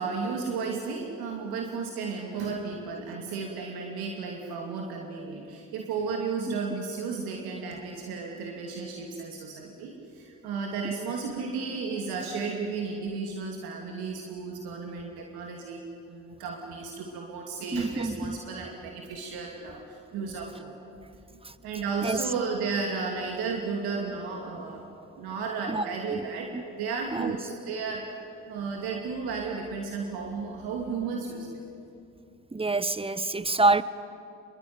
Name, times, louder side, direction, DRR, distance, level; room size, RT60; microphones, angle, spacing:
voice 1, 0.0-15.8 16.1-20.9 21.6-31.6, right 4 dB, 80° right, 2.6 m, -34 dB
voice 2, 17.7-18.4 21.4-21.5 22.0-22.2 25.7-25.8 26.5-26.6 27.1-27.3 32.5-33.8, right 2 dB, 15° right, 1.2 m, -26 dB
25.5 x 22.0 x 9.6 m
hypercardioid pair, 50°, 37 cm